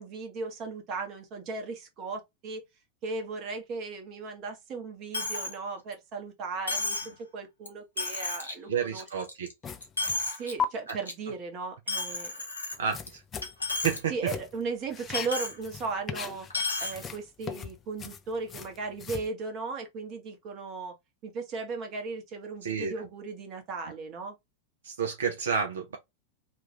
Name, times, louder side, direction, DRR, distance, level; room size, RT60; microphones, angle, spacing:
voice 1, 0.0-2.6 3.0-7.0 7.3-9.0 10.4-12.4 14.1-16.5 16.8-21.0 21.2-24.4, right 4 dB, 35° right, 1.0 m, -36 dB
Coin (dropping), 5.1-5.5 5.9-6.0 6.7-7.1 7.6-7.7 8.0-8.5 9.0-9.5 9.8-10.5 10.9-11.1 11.9-13.1 13.4-14.0 14.3-14.4 15.1-15.6 16.5-16.9, left 3 dB, 80° left, 0.9 m, -32 dB
voice 2, 8.7-9.5 10.9-11.0 12.8-13.2 13.8-14.1 22.6-22.9 24.8-26.0, right 6 dB, 65° right, 0.6 m, -30 dB
sound 1, 9.6-10.3 10.6-10.7 12.7-14.0 14.3-14.6 14.9-16.6 16.9-19.3, left 7 dB, 25° left, 0.4 m, -37 dB
2.8 x 2.4 x 2.8 m
figure-of-eight pair, 90°, 0 cm